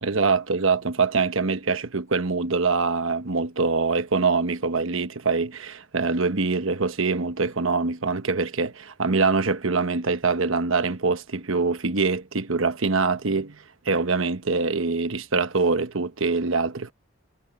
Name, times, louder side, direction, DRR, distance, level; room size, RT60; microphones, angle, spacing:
voice 1, 0.0-16.9, right 4 dB, 75° right, 1.1 m, -24 dB
head